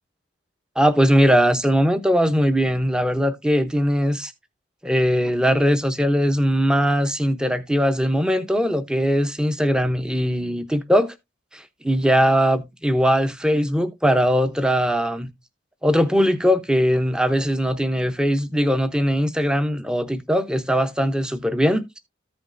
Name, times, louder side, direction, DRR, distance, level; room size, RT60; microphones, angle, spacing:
voice 1, 0.8-4.3 4.8-11.1 11.5-15.3 15.8-21.8, equal, 5° right, 0.6 m, -20 dB
14.0 x 5.2 x 2.5 m
head